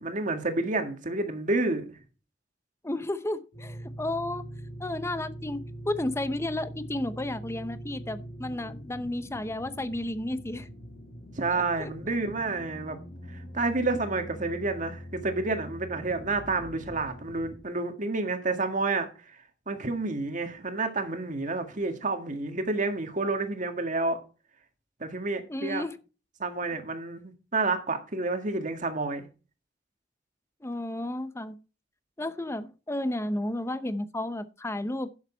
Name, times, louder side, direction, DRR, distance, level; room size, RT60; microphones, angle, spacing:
voice 1, 0.0-1.9 11.4-13.0 13.3-19.4 19.7-24.2 25.0-25.8 26.4-29.2, right 3 dB, 45° right, 1.8 m, -29 dB
voice 2, 2.8-4.4 4.8-10.7 11.5-11.9 25.5-26.0 30.6-31.6 32.2-35.1, left 1 dB, 15° left, 0.7 m, -32 dB
sound 1, 3.5-17.6, equal, 45° left, 2.5 m, -43 dB
11.5 x 7.3 x 4.4 m
head